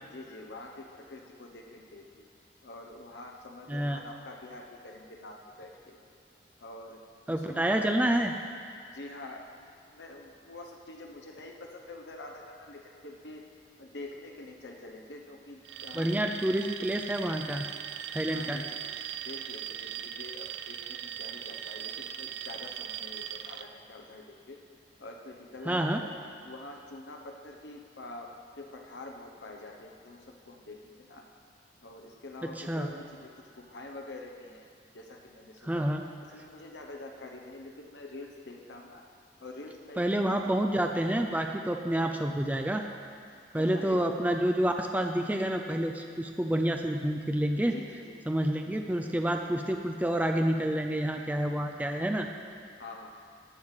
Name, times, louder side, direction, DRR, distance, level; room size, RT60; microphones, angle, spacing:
voice 1, 0.0-2.3 2.6-6.0 6.6-7.0 7.3-7.9 8.9-13.4 13.8-16.2 18.3-18.8 19.2-24.6 25.0-26.0 26.4-31.3 31.8-34.7 34.9-35.8 36.2-39.0 39.4-40.6 42.9-43.1 43.6-44.0 47.7-48.2 49.1-49.3 52.8-53.1, left 2 dB, 75° left, 1 dB, 1.0 m, -46 dB
voice 2, 3.7-4.0 7.3-8.3 15.9-17.7 18.1-18.7 25.7-26.0 32.6-32.9 35.6-36.0 40.0-42.8 43.5-47.8 48.3-52.3, right 1 dB, 10° right, 3 dB, 0.5 m, -28 dB
Alarm, 15.6-23.7, right 10 dB, 70° right, 0.5 m, -39 dB
14.0 x 9.3 x 4.9 m, 2.3 s
head